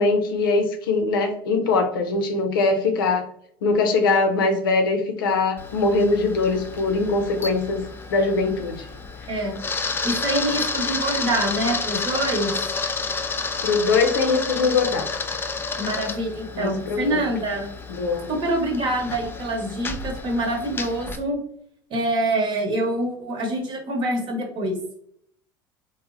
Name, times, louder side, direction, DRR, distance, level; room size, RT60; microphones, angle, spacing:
voice 1, 0.0-3.3 3.6-7.8 8.1-8.9 13.6-15.1 16.5-17.2 17.9-18.3, left 3 dB, 75° left, 5 dB, 0.5 m, -22 dB
Camera, 5.6-21.2, left 4 dB, 20° left, 0.4 m, -30 dB
voice 2, 9.3-9.6 10.0-12.6 15.8-17.7 18.3-21.4 21.9-24.8, right 1 dB, 45° right, 1 dB, 1.0 m, -25 dB
3.2 x 2.1 x 2.5 m, 0.68 s
hypercardioid pair, 70°, 12 cm